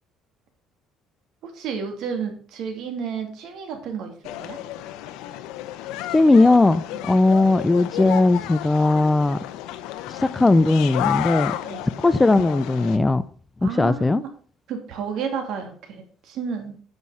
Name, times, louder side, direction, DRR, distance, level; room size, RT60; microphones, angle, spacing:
voice 1, 1.4-4.6 6.9-7.0 11.6-11.8 13.6-14.3 14.7-16.8, right 6 dB, 60° right, 2.6 m, -31 dB
sound 1, 4.2-13.0, left 12 dB, 90° left, 0.8 m, -32 dB
voice 2, 6.1-9.4 10.1-11.5 12.0-13.2 13.6-14.2, left 2 dB, 10° left, 0.4 m, -18 dB
9.5 x 6.5 x 5.6 m
cardioid pair, 155°, 0 cm